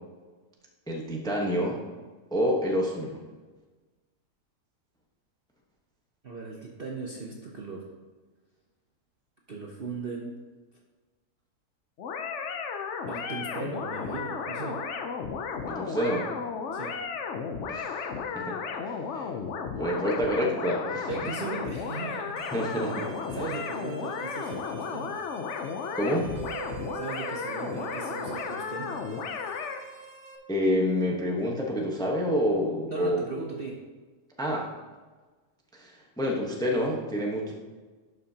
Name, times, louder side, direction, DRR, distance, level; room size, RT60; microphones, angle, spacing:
voice 1, 0.9-1.8 2.3-3.2 15.7-16.3 17.7-18.6 18.8-19.3 19.8-21.1 22.5-23.6 25.9-26.3 30.5-33.2 34.4-34.7 35.7-37.5, equal, 5° left, -1 dB, 0.8 m, -28 dB
voice 2, 6.2-7.9 9.5-10.4 13.1-14.8 16.7-17.0 21.1-22.5 23.3-25.2 26.9-29.0 32.9-33.9, right 3 dB, 45° right, -1 dB, 0.8 m, -37 dB
sound 1, 12.0-29.8, left 6 dB, 60° left, 0.8 m, -34 dB
sound 2, 22.4-30.4, right 6 dB, 75° right, 1.6 m, -45 dB
11.5 x 6.4 x 2.8 m, 1.3 s
omnidirectional pair, 1.7 m